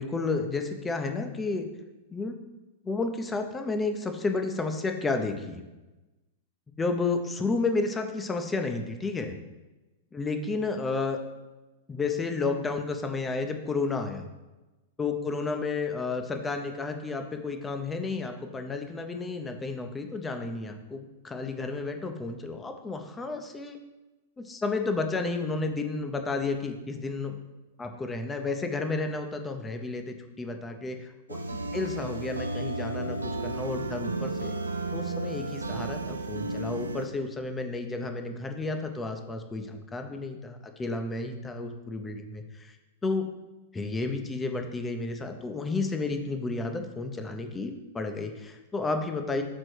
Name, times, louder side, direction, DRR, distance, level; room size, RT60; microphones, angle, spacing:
voice 1, 0.0-1.6 2.1-2.3 2.8-5.6 6.8-9.4 10.1-11.2 11.9-14.3 15.0-23.8 24.4-27.4 27.8-31.4 31.7-34.6 34.9-42.7 43.0-43.3 43.7-49.4, left 3 dB, 15° left, 5 dB, 0.8 m, -31 dB
sound 1, 31.3-37.1, right 2 dB, 90° right, 0.5 m, -33 dB
6.4 x 4.3 x 4.6 m, 1.1 s
hypercardioid pair, 105°, 0 cm